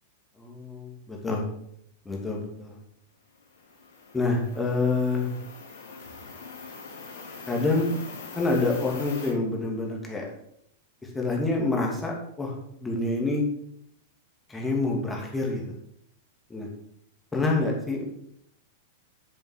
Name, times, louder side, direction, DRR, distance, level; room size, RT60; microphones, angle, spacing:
voice 1, 0.4-1.4 2.1-2.8 4.1-5.3 7.5-7.9 8.3-10.3 11.1-12.5 12.8-13.4 14.5-15.6 16.5-16.7 17.3-18.0, left 3 dB, 10° left, -1 dB, 2.3 m, -27 dB
sound 1, 3.4-9.3, left 4 dB, 60° left, 2.7 m, -43 dB
8.6 x 6.9 x 3.8 m, 0.73 s
figure-of-eight pair, 95°, 0 cm